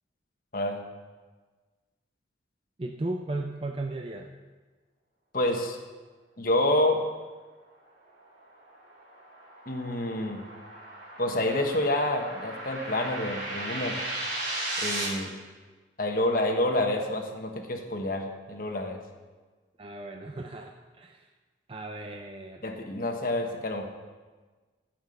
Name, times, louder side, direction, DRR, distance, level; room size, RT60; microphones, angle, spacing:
voice 1, 2.8-4.3 19.8-21.3 21.7-22.7, right 2 dB, 30° right, 3 dB, 0.5 m, -36 dB
voice 2, 5.3-5.8 6.4-7.0 9.7-10.4 11.2-14.0 14.8-15.3 16.0-19.0 22.6-23.8, left 1 dB, 50° left, 3 dB, 1.3 m, -28 dB
sound 1, 8.2-15.1, right 1 dB, 50° right, 4.1 m, -36 dB
15.0 x 5.9 x 6.6 m, 1.3 s
head